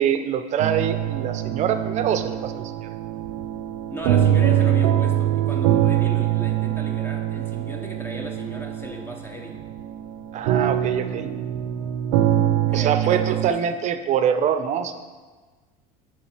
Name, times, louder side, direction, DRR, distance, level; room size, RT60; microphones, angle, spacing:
voice 1, 0.0-2.9 10.3-11.3 12.7-14.9, right 8 dB, 40° right, 9 dB, 0.5 m, -24 dB
sound 1, 0.6-13.5, right 11 dB, 90° right, 0.5 m, -23 dB
voice 2, 3.9-9.6 12.7-13.5, equal, 10° left, 2 dB, 0.6 m, -36 dB
7.2 x 4.8 x 4.9 m, 1.3 s
supercardioid pair, 130°, 19 cm